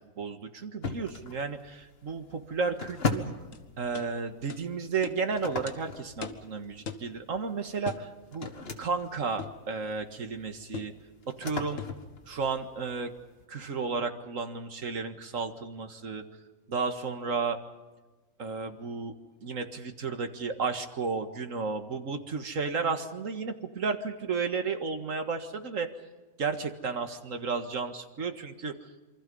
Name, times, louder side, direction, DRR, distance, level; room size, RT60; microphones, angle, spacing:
voice 1, 0.2-3.3 3.8-8.5 8.8-10.9 11.3-11.8 12.2-13.1 13.5-16.2 16.7-17.6 18.4-19.2 19.4-25.9 26.4-28.9, right 4 dB, 60° right, 7 dB, 2.1 m, -33 dB
sound 1, 0.8-13.4, left 3 dB, 40° left, 1.9 m, -39 dB
sound 2, 3.5-3.6 3.9-4.1 4.5-4.6 5.0-5.2 5.7-5.8 6.2-6.5 6.9-7.1 7.9-8.1 9.4-9.6 10.7-11.0 11.8-12.0, left 6 dB, 60° left, 1.7 m, -39 dB
27.5 x 24.5 x 5.5 m, 1.2 s
omnidirectional pair, 1.6 m